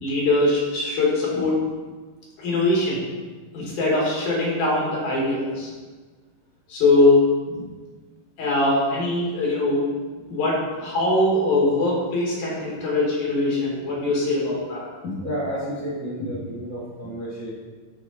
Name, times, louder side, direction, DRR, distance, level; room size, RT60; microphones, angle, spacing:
voice 1, 0.0-1.6 2.4-3.1 3.5-5.7 6.7-7.2 7.5-7.6 8.4-9.8 10.3-15.1, left 2 dB, 90° left, -5 dB, 3.6 m, -22 dB
voice 2, 15.2-17.5, equal, 45° right, -7 dB, 0.9 m, -31 dB
11.0 x 3.8 x 4.1 m, 1.4 s
omnidirectional pair, 3.4 m